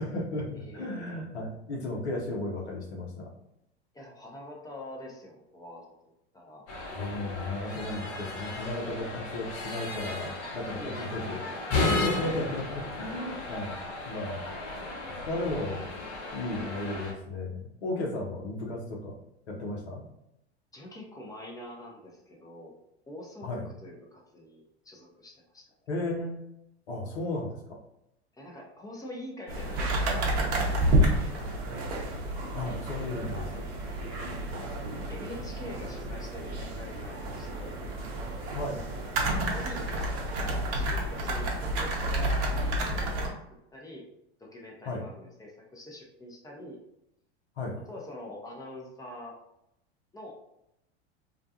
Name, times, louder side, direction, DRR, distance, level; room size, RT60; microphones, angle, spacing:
voice 1, 0.0-3.3 6.9-11.4 11.7-13.8 14.0-15.9 16.3-19.2 19.5-20.0 23.4-23.6 25.9-26.4 26.9-27.8 32.5-33.4 38.5-38.8 44.8-45.0 47.6-47.7, left 2 dB, 80° left, -2 dB, 0.9 m, -34 dB
voice 2, 0.5-0.9 3.9-6.7 10.8-11.2 20.7-22.7 23.1-23.5 23.8-25.7 28.3-31.5 33.3-33.7 35.1-37.8 39.3-43.4 43.7-44.1 44.4-46.8 47.7-49.4 50.1-50.3, left 1 dB, 10° left, -2 dB, 0.6 m, -45 dB
sound 1, 6.7-17.1, left 2 dB, 45° left, 0.8 m, -35 dB
sound 2, 29.5-43.3, right 1 dB, 45° right, 0.7 m, -30 dB
2.4 x 2.2 x 2.7 m, 0.82 s
hypercardioid pair, 85°, 33 cm